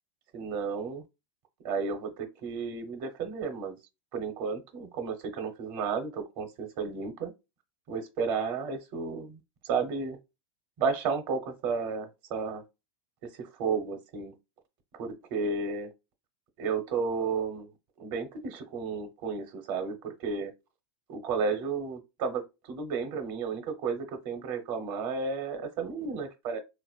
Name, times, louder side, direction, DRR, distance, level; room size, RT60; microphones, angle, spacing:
voice 1, 0.3-1.0 1.6-3.8 4.1-7.3 7.9-9.4 9.6-10.2 10.8-12.6 13.4-14.3 15.0-15.9 16.6-17.7 18.0-20.5 21.1-22.4 22.7-26.6, right 5 dB, 30° right, 0.8 m, -32 dB
4.1 x 2.4 x 2.4 m
supercardioid pair, 175°, 16 cm